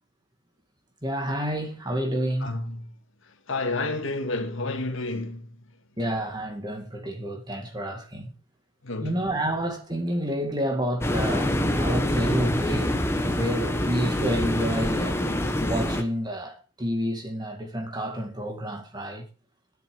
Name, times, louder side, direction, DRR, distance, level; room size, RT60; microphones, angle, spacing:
voice 1, 1.0-2.6 6.0-8.3 9.0-15.2 15.6-19.2, equal, 20° right, 2.1 m, -29 dB
voice 2, 2.4-2.9 3.5-5.6 8.8-9.2, left 2 dB, 60° left, 2.0 m, -30 dB
sound 1, 11.0-16.0, left 1 dB, 10° left, 1.1 m, -25 dB
11.0 x 10.5 x 5.0 m
head